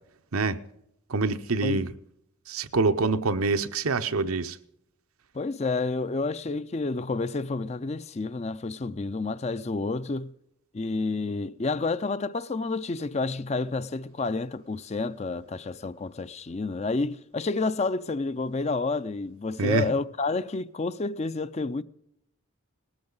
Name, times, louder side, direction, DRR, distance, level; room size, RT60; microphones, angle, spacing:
voice 1, 1.1-1.9 2.5-4.6 19.6-19.9, right 3 dB, 80° right, 0.9 m, -25 dB
voice 2, 5.3-10.3 10.7-21.8, left 3 dB, 30° left, 0.4 m, -29 dB
19.5 x 14.0 x 3.9 m
head